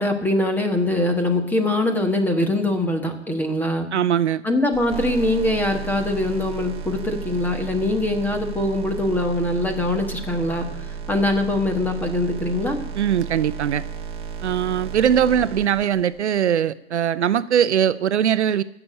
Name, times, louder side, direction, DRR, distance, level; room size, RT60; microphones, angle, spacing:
voice 1, 0.0-3.9 4.4-10.7 11.1-12.8, left 1 dB, 5° left, 5 dB, 1.3 m, -22 dB
voice 2, 3.9-4.4 13.0-13.8 14.4-18.6, right 9 dB, 75° right, 15 dB, 0.7 m, -21 dB
sound 1, 4.7-16.4, right 7 dB, 15° right, 1.5 m, -34 dB
15.5 x 7.0 x 8.7 m, 0.81 s
hypercardioid pair, 130°, 35 cm